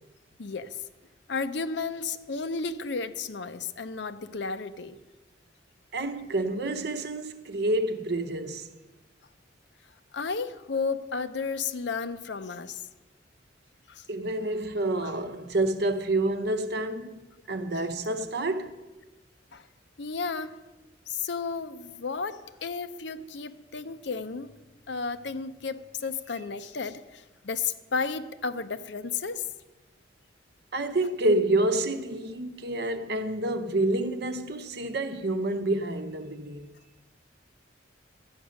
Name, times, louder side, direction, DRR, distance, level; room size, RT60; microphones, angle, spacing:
voice 1, 0.4-0.8 1.3-5.0 10.1-12.8 13.9-14.0 15.0-15.1 19.5-19.7 20.0-20.6 21.1-24.6 24.9-29.5, left 4 dB, 65° left, 0.6 m, -33 dB
voice 2, 5.9-8.7 14.1-17.2 17.5-18.8 30.7-36.7, right 2 dB, 55° right, 0.8 m, -28 dB
13.0 x 9.1 x 6.4 m
head